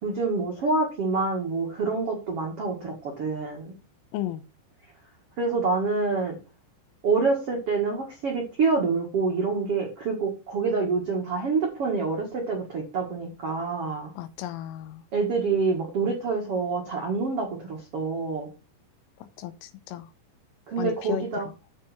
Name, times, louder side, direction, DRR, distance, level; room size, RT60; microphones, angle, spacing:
voice 1, 0.0-3.7 5.4-6.4 7.0-14.1 15.1-18.5 20.7-21.5, right 4 dB, 75° right, 1.3 m, -27 dB
voice 2, 4.1-4.4 14.2-15.0 19.4-20.1 20.8-21.2, left 12 dB, 90° left, 3.3 m, -33 dB
9.7 x 4.7 x 6.0 m
omnidirectional pair, 5.9 m